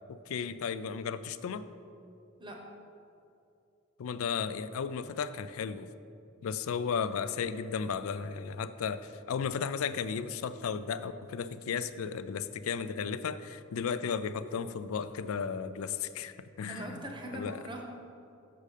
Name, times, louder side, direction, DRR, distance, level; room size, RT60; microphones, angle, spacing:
voice 1, 0.1-1.7 4.0-5.9 6.4-17.1 17.3-17.6, left 6 dB, 75° left, 13 dB, 0.4 m, -34 dB
voice 2, 16.7-17.8, right 1 dB, 20° right, 1 dB, 0.8 m, -41 dB
6.9 x 6.5 x 4.9 m, 2.6 s
head